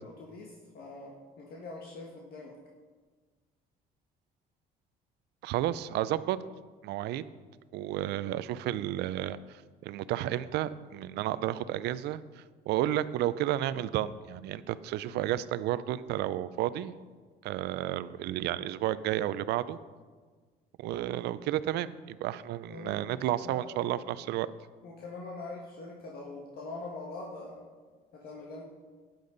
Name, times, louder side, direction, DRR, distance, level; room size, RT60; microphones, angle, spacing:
voice 1, 0.0-2.6 22.7-23.2 23.4-23.6 24.8-27.6 28.1-28.6, left 3 dB, 65° left, -2 dB, 1.7 m, -43 dB
voice 2, 5.4-6.4 6.8-7.2 7.7-17.0 17.4-19.8 20.8-24.5, right 13 dB, 80° right, 15 dB, 0.5 m, -32 dB
13.0 x 10.5 x 4.0 m, 1.5 s
cardioid pair, 110°, 17 cm